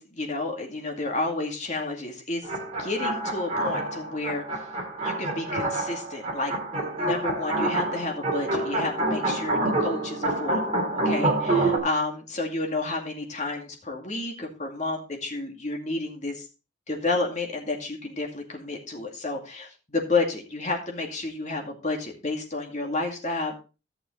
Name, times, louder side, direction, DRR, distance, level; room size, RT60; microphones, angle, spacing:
voice 1, 0.0-2.5 2.8-4.4 5.0-16.5 16.9-23.6, left 3 dB, 35° left, 1 dB, 2.3 m, -31 dB
sound 1, 2.4-11.8, right 2 dB, 30° right, 2.4 m, -27 dB
14.5 x 6.8 x 3.2 m, 0.31 s
head